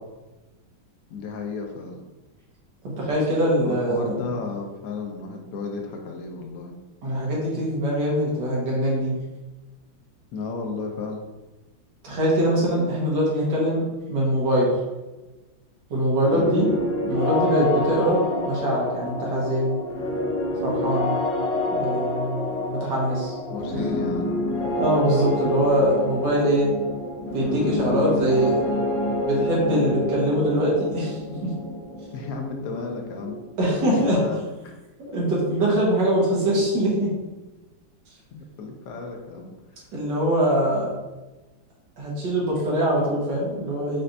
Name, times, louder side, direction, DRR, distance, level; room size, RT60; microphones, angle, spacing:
voice 1, 1.1-2.0 3.6-6.7 10.3-11.3 16.3-16.5 23.5-24.4 32.1-33.4 33.9-34.5 38.3-39.9, left 4 dB, 85° left, 1 dB, 0.8 m, -33 dB
voice 2, 3.0-4.2 7.0-9.1 12.0-13.8 14.1-14.7 15.9-16.7 17.0-19.8 20.6-21.1 21.7-23.8 24.8-26.7 27.3-28.7 29.2-31.5 33.6-34.2 35.0-37.1 39.9-40.9 42.0-44.0, right 1 dB, 60° right, -5 dB, 1.9 m, -23 dB
sound 1, 16.2-33.8, left 1 dB, 65° left, 2.3 m, -28 dB
5.6 x 3.2 x 2.6 m, 1.1 s
omnidirectional pair, 2.2 m